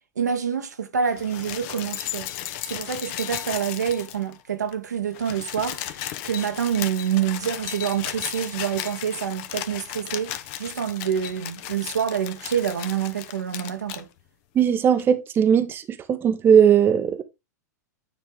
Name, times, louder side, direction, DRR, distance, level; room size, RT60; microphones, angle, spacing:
voice 1, 0.2-2.3 2.7-14.1, right 8 dB, 75° right, 1.2 m, -27 dB
sound 1, 1.1-4.4 4.7-4.8 5.0-14.0 15.0-15.1, left 12 dB, 45° left, 0.9 m, -35 dB
voice 2, 14.5-15.8 16.1-17.2, right 8 dB, 25° right, 0.8 m, -18 dB
9.7 x 4.3 x 3.5 m
figure-of-eight pair, 95°, 9 cm